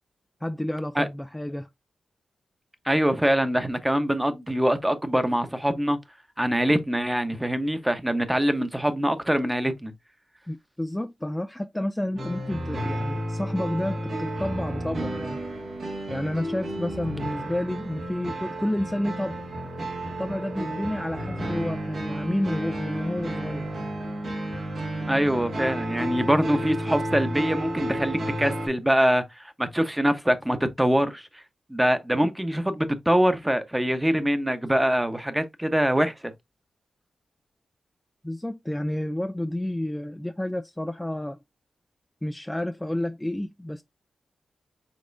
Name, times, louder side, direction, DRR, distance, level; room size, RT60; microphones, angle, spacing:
voice 1, 0.4-1.7 10.5-15.4 16.1-19.4 20.2-23.9 38.2-41.4 42.2-43.8, left 1 dB, 10° left, 0.4 m, -30 dB
voice 2, 2.8-6.0 6.4-9.9 25.1-31.4 31.7-36.3, equal, 10° right, 1.0 m, -24 dB
sound 1, 12.2-28.7, right 1 dB, 70° right, 1.7 m, -32 dB
5.3 x 3.6 x 2.6 m
cardioid pair, 45°, 0 cm